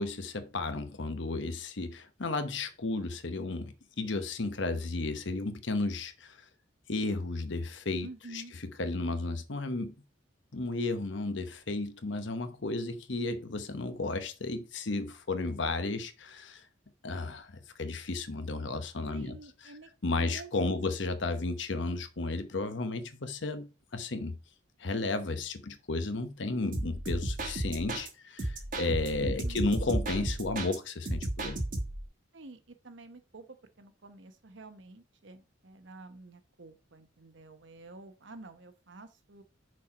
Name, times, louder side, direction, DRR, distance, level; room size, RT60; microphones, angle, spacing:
voice 1, 0.0-6.4 6.9-9.9 10.5-16.6 17.0-19.4 20.0-24.4 24.8-31.6, left 3 dB, 65° left, 0.9 m, -33 dB
voice 2, 8.0-8.5 19.1-19.9 20.2-20.9 29.2-29.7 32.3-33.4 33.8-39.4, right 3 dB, 65° right, 1.0 m, -49 dB
sound 1, 26.7-28.1 28.4-30.8 31.1-32.1, right 1 dB, 45° right, 1.3 m, -34 dB
6.3 x 4.5 x 4.8 m
head